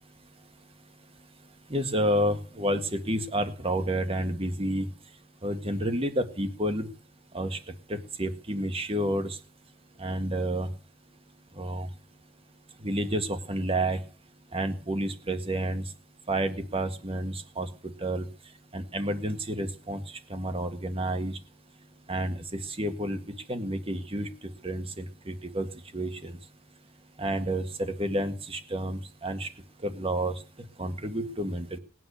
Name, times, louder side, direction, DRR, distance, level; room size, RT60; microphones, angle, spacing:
voice 1, 1.7-4.9 5.4-6.9 7.3-7.6 7.9-9.4 10.0-10.7 11.6-11.9 12.8-14.0 14.5-15.8 16.3-17.7 18.0-18.2 18.7-20.0 20.3-21.3 22.1-23.2 23.5-24.3 24.6-25.7 25.9-26.3 27.2-29.5 29.8-30.3 30.8-31.8, right 1 dB, 30° right, 7 dB, 1.9 m, -30 dB
19.0 x 9.5 x 7.0 m, 0.39 s
head